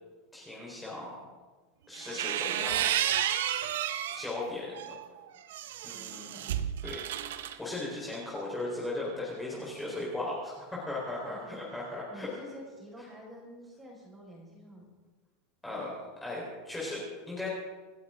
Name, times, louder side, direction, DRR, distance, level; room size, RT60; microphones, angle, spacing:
voice 1, 0.3-1.1 1.9-2.9 4.1-4.9 5.8-6.5 6.8-7.0 7.6-12.3 15.6-15.9 16.2-17.5, left 2 dB, 10° left, -5 dB, 4.5 m, -37 dB
sound 1, 1.9-4.3 4.7-7.6, right 11 dB, 85° right, 0.9 m, -32 dB
voice 2, 5.9-6.8 11.1-14.9, equal, 10° right, -1 dB, 5.7 m, -49 dB
27.5 x 12.5 x 3.9 m, 1.3 s
supercardioid pair, 150°, 0 cm